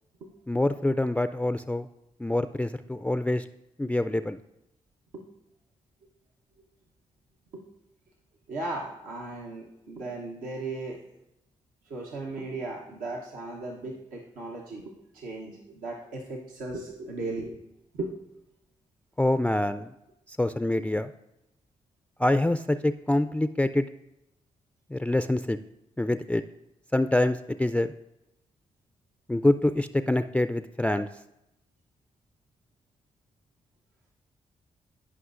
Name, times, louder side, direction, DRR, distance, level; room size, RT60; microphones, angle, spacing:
voice 1, 0.5-1.9 2.2-3.4 3.8-4.4 19.2-19.9 20.4-21.1 22.2-23.9 24.9-25.6 26.0-26.4 26.9-27.9 29.3-31.1, left 1 dB, 10° left, 10 dB, 0.3 m, -25 dB
voice 2, 8.5-11.0 11.9-17.6 17.9-18.1, right 2 dB, 85° right, -2 dB, 0.9 m, -36 dB
15.0 x 5.5 x 2.5 m, 0.87 s
supercardioid pair, 40°, 14 cm